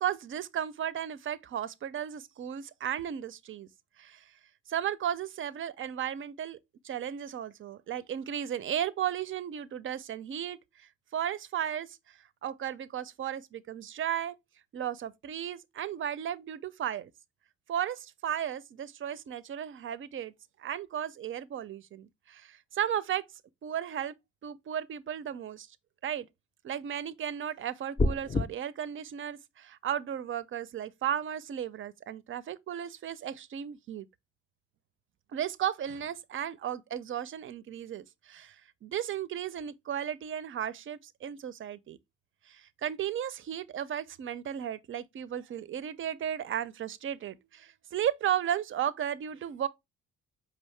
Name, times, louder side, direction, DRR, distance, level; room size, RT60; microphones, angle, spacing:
voice 1, 0.0-3.7 4.0-4.2 4.7-6.6 6.8-14.4 14.7-17.1 17.7-20.3 20.6-23.3 23.6-24.1 24.4-25.7 26.0-26.3 26.6-34.1 35.3-38.6 38.8-42.0 42.5-49.7, right 10 dB, 45° right, 0.4 m, -35 dB
sound 1, 28.0-28.5, left 2 dB, 20° left, 0.4 m, -26 dB
4.9 x 2.7 x 3.1 m
cardioid pair, 90°, 30 cm